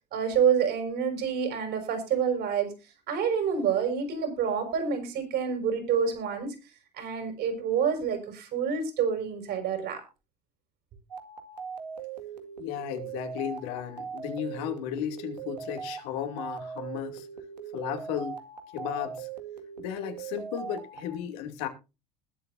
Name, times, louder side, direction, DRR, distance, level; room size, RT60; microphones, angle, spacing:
voice 1, 0.1-2.7 3.1-6.6 6.9-10.0, right 7 dB, 55° right, 5.8 m, -27 dB
sound 1, 11.1-21.1, right 6 dB, 85° right, 1.9 m, -40 dB
voice 2, 12.6-17.3 17.7-18.4 18.7-19.3 19.8-21.7, left 10 dB, 65° left, 2.6 m, -34 dB
20.5 x 7.9 x 2.6 m
figure-of-eight pair, 70°, 21 cm